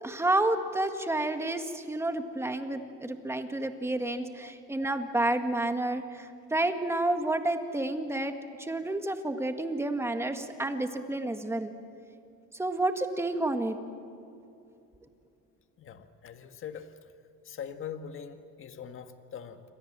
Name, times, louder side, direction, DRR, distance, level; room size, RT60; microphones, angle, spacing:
voice 1, 0.0-8.3 8.6-11.7 12.5-13.8, right 2 dB, 10° right, 6 dB, 1.8 m, -30 dB
voice 2, 15.8-17.0 17.4-19.6, left 8 dB, 45° left, 7 dB, 1.7 m, -42 dB
28.5 x 25.5 x 7.6 m, 2.6 s
cardioid pair, 150°, 29 cm